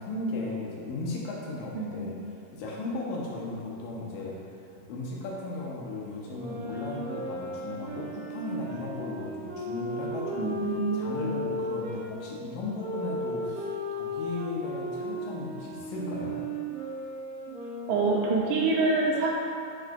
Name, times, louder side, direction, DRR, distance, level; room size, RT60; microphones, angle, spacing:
voice 1, 0.0-2.2 2.5-16.4, left 2 dB, 75° left, -3 dB, 2.6 m, -36 dB
voice 2, 1.7-2.0 10.4-11.3 17.9-19.3, right 3 dB, 75° right, -2 dB, 2.2 m, -26 dB
sound 1, 6.2-12.1 12.8-18.2, equal, 45° right, 1.2 m, -35 dB
5.4 x 4.5 x 5.1 m, 2.5 s
omnidirectional pair, 4.1 m